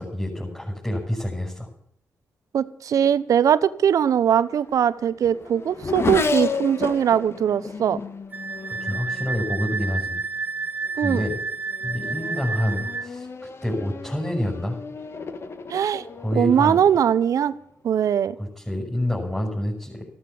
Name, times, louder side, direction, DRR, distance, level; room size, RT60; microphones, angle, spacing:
voice 1, 0.0-1.7 8.7-10.2 11.0-11.4 11.8-13.3 13.6-14.8 16.2-16.8 18.4-20.1, left 1 dB, 10° left, -2 dB, 6.3 m, -27 dB
voice 2, 2.5-8.0 11.0-11.2 15.7-16.0 16.4-17.5 17.8-18.3, right 8 dB, 70° right, 16 dB, 0.9 m, -21 dB
Race car auto racing / Accelerating revving vroom, 4.2-10.0 10.9-11.2 11.7-17.6, left 4 dB, 45° left, 1.5 m, -33 dB
Wind instrument woodwind instrument, 8.3-13.1, right 4 dB, 30° right, 0.8 m, -30 dB
14.0 x 13.0 x 7.1 m, 0.64 s
cardioid pair, 65°, 6 cm